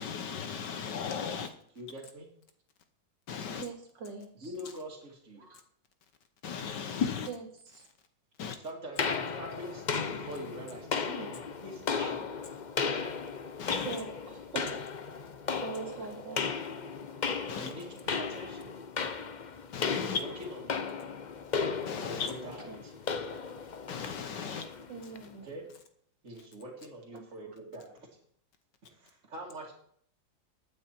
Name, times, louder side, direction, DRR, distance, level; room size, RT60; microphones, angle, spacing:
voice 1, 0.0-1.5 3.3-3.7 6.4-7.3 8.4-8.6 13.6-14.0 17.5-17.7 19.7-20.2 21.9-22.3 23.9-24.6, left 6 dB, 70° left, 1.6 m, -35 dB
voice 2, 1.8-2.3 4.4-5.5 8.6-12.3 17.5-18.7 19.9-20.9 22.0-22.9 25.4-25.7 26.2-28.1 28.9-29.7, right 1 dB, 45° right, 2.4 m, -44 dB
voice 3, 3.6-4.5 5.4-5.6 7.3-7.4 7.7-7.8 13.8-14.8 15.6-16.4 22.7-22.8 24.9-25.5 27.1-27.2, right 5 dB, 80° right, 3.0 m, -41 dB
sound 1, 9.0-25.3, left 5 dB, 50° left, 0.5 m, -35 dB
15.0 x 9.1 x 4.4 m
omnidirectional pair, 1.9 m